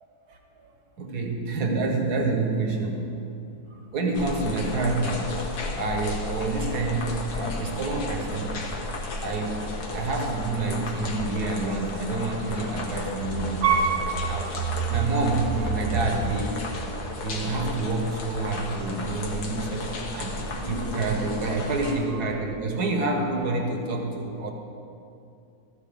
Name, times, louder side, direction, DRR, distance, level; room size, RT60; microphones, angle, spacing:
voice 1, 0.3-0.7 1.0-3.1 3.7-8.6 9.2-14.5 14.9-16.8 17.2-24.5, right 3 dB, 85° right, 2 dB, 1.7 m, -28 dB
sound 1, 4.1-21.9, left 2 dB, 85° left, 1.7 m, -34 dB
sound 2, 7.9-8.0 8.4-8.5 9.0-9.1 10.0-16.1, right 7 dB, 60° right, 0.8 m, -33 dB
13.0 x 9.9 x 3.6 m, 2.6 s
omnidirectional pair, 1.7 m